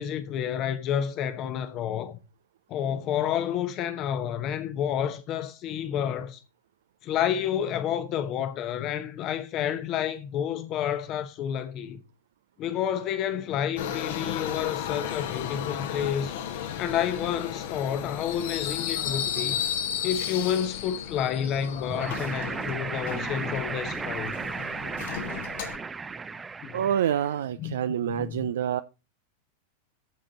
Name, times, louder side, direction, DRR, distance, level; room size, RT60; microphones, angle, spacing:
voice 1, 0.0-2.2 2.7-6.4 7.0-12.0 12.6-16.3 16.7-19.6 20.0-24.4 26.6-26.8 27.6-28.5, left 9 dB, 35° left, 0.9 m, -30 dB
Subway metro underground, 13.8-25.8, left 9 dB, 55° left, 1.2 m, -34 dB
sound 1, 21.9-27.3, right 4 dB, 15° right, 0.6 m, -35 dB
voice 2, 26.7-28.8, right 9 dB, 60° right, 0.4 m, -27 dB
15.0 x 5.0 x 3.9 m
figure-of-eight pair, 90°, 0 cm